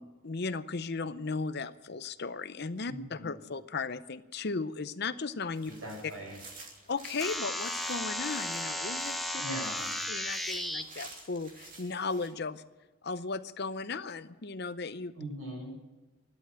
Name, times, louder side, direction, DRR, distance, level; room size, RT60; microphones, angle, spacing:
voice 1, 0.0-5.7 6.9-9.4 10.1-12.6 13.0-15.1, left 4 dB, 50° left, 13 dB, 0.6 m, -36 dB
voice 2, 2.9-3.3 5.8-6.4 9.4-9.9 15.2-15.7, right 1 dB, 85° right, -1 dB, 7.8 m, -40 dB
sound 1, 5.5-12.3, right 3 dB, 40° right, 3.0 m, -51 dB
sound 2, 7.2-10.8, left 1 dB, ahead, 0.9 m, -34 dB
13.0 x 12.0 x 8.8 m, 1.1 s
head